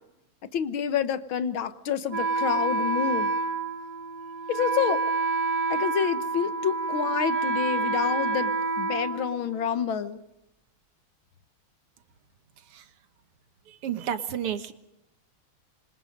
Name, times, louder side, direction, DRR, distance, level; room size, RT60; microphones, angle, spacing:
voice 1, 0.5-3.3 4.5-5.0 5.7-10.2, left 8 dB, 70° left, 12 dB, 1.9 m, -28 dB
Wind instrument woodwind instrument, 2.1-9.8, right 4 dB, 50° right, 1.8 m, -28 dB
voice 2, 13.8-14.7, right 9 dB, 90° right, 10 dB, 2.4 m, -30 dB
26.5 x 24.5 x 5.3 m, 0.87 s
omnidirectional pair, 2.4 m